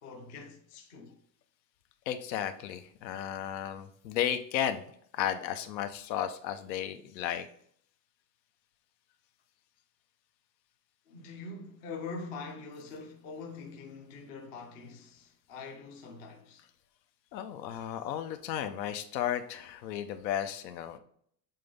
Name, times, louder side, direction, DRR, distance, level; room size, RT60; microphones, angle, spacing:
voice 1, 0.0-1.2 11.1-16.7, left 4 dB, 20° left, 0.3 m, -44 dB
voice 2, 2.1-4.8 5.1-7.5 17.3-21.0, left 10 dB, 85° left, 1.0 m, -34 dB
7.5 x 3.9 x 3.6 m
supercardioid pair, 170°, 50 cm